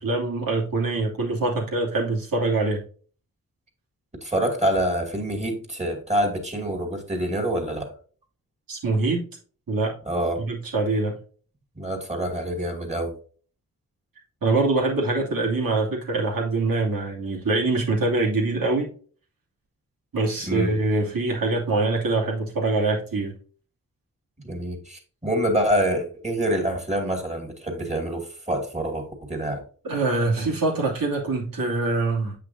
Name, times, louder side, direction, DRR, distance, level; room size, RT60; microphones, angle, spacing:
voice 1, 0.0-2.8 8.7-9.2 9.7-9.9 10.4-11.1 14.4-18.9 20.1-23.3 29.8-32.4, right 3 dB, 80° right, 2.7 m, -24 dB
voice 2, 4.2-7.9 10.1-10.4 11.7-13.1 20.4-20.7 24.4-29.6, right 1 dB, 20° right, 2.4 m, -26 dB
8.5 x 5.8 x 2.7 m
cardioid pair, 70°, 34 cm